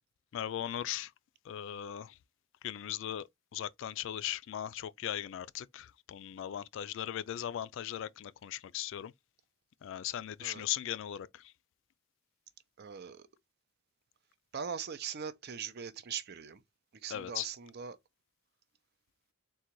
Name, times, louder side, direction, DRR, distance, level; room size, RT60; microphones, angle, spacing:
voice 1, 0.3-1.1 1.4-2.2 2.6-9.1 9.8-11.5 17.1-17.5, left 11 dB, 65° left, 0.3 m, -38 dB
voice 2, 12.8-13.3 14.5-16.6 16.9-18.0, right 7 dB, 50° right, 0.5 m, -41 dB
3.8 x 2.3 x 4.4 m
head